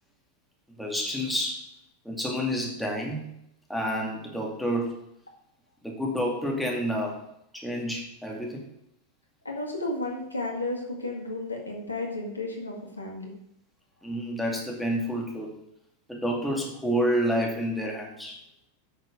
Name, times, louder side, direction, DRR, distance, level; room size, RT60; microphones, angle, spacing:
voice 1, 0.8-1.7 2.0-3.3 3.7-5.0 5.8-7.3 7.5-8.7 14.0-15.5 16.1-18.4, equal, ahead, -2 dB, 2.3 m, -29 dB
voice 2, 9.5-13.3, left 2 dB, 80° left, 0 dB, 1.9 m, -33 dB
9.4 x 6.6 x 5.0 m, 0.77 s
figure-of-eight pair, 90°, 0 cm